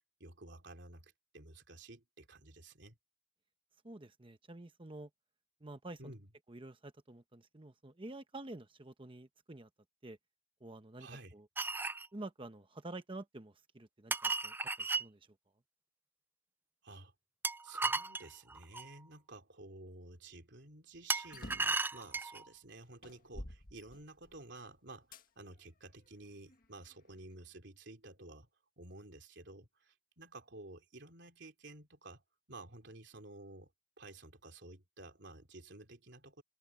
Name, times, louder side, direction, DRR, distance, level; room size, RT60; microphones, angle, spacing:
voice 1, 0.2-3.0 6.0-6.3 11.0-11.3 16.8-17.1 17.6-28.5 28.8-32.2 32.5-33.7 34.0-36.4, right 2 dB, 65° right, 3.5 m, -53 dB
voice 2, 3.8-5.1 5.6-6.0 6.5-9.7 10.0-10.2 10.6-11.1 11.3-11.4 12.1-15.2, right 2 dB, 25° right, 1.0 m, -49 dB
sound 1, 11.6-12.1 14.1-15.1 17.4-18.9 21.1-22.4, right 3 dB, 10° right, 0.4 m, -35 dB
sound 2, 21.3-21.8 22.5-22.6 23.0-24.4 25.1-25.3 26.0-27.0, left 1 dB, 45° left, 1.8 m, -50 dB
open air
head